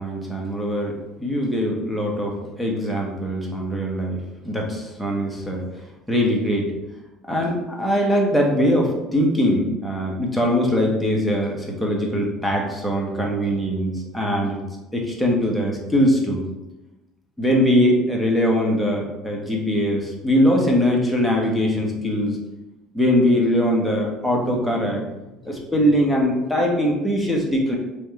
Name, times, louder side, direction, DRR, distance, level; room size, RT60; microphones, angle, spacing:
voice 1, 0.0-4.2 4.4-5.6 6.1-6.7 7.3-14.6 14.9-16.5 17.4-22.4 22.9-25.0 25.4-27.8, equal, ahead, -2 dB, 1.3 m, -21 dB
4.6 x 3.4 x 3.3 m, 1.0 s
hypercardioid pair, 65°, 0 cm